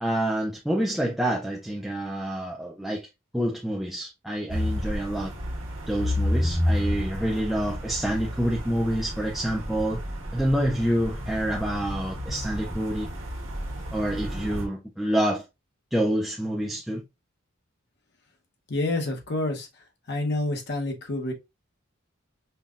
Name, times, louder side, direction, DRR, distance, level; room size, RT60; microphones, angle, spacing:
voice 1, 0.0-3.1 3.3-5.3 5.9-10.0 10.3-13.1 13.9-15.4 15.9-17.0, right 1 dB, ahead, 0.4 m, -27 dB
sound 1, 4.5-14.7, left 1 dB, 80° right, 1.3 m, -31 dB
voice 2, 18.7-19.7 20.1-21.3, left 2 dB, 55° left, 0.9 m, -28 dB
5.5 x 2.3 x 2.4 m
head